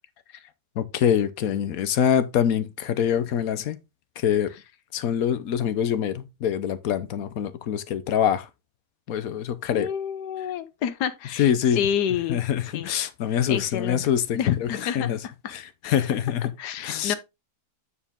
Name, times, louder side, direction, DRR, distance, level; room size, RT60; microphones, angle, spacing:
voice 1, 0.8-3.8 4.2-4.5 4.9-8.5 9.1-9.9 11.4-11.8 12.3-15.2 15.5-17.1, left 9 dB, 65° left, 1.2 m, -25 dB
voice 2, 9.7-12.4 12.7-12.9 13.5-14.0 14.3-15.1 16.6-17.1, left 9 dB, 85° left, 1.4 m, -28 dB
9.0 x 4.5 x 3.5 m
omnidirectional pair, 1.7 m